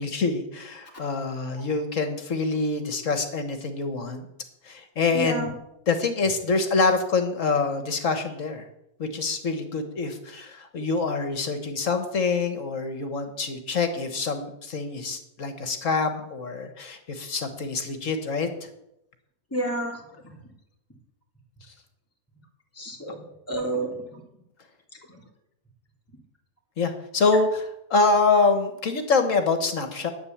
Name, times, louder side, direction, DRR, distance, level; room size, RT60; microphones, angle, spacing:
voice 1, 0.0-4.3 4.6-5.5 5.9-8.7 9.0-18.7 26.8-30.1, left 4 dB, 60° left, 7 dB, 1.6 m, -25 dB
voice 2, 5.1-5.5 19.5-20.0 22.8-23.2 23.5-24.2, right 1 dB, 10° left, -3 dB, 2.8 m, -29 dB
10.5 x 9.2 x 7.1 m, 0.83 s
omnidirectional pair, 1.5 m